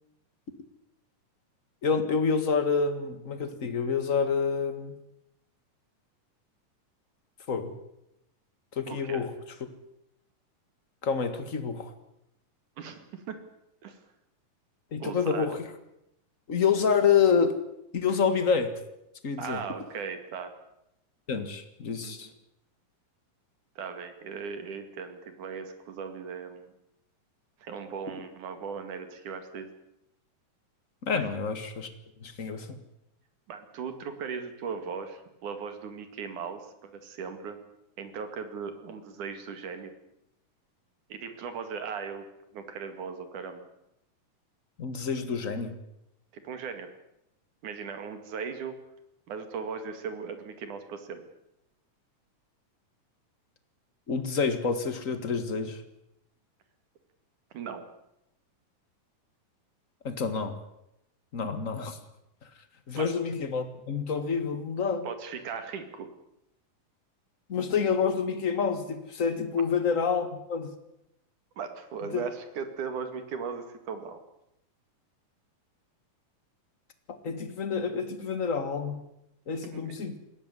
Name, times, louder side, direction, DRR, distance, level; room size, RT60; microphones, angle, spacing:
voice 1, 1.8-5.0 7.5-7.7 8.7-9.3 11.0-11.9 14.9-15.7 16.5-17.6 17.9-18.7 19.2-19.6 21.3-22.3 31.0-31.9 32.2-32.8 44.8-45.8 54.1-55.8 60.0-60.6 61.3-62.0 62.9-65.1 67.5-70.7 72.1-72.2 77.2-79.0 79.5-80.2, left 6 dB, 35° left, 9 dB, 1.4 m, -28 dB
voice 2, 8.9-9.3 12.8-13.4 13.8-14.0 15.0-15.5 19.4-20.5 22.0-22.3 23.8-26.7 27.6-29.7 31.1-31.3 33.5-37.6 38.0-39.9 41.1-42.3 42.5-43.7 46.3-46.9 47.6-48.8 49.3-51.2 57.5-57.9 63.0-63.1 65.0-66.1 71.6-74.2 79.5-80.1, right 6 dB, 65° right, 8 dB, 3.5 m, -38 dB
20.0 x 16.5 x 9.9 m, 0.85 s
omnidirectional pair, 3.9 m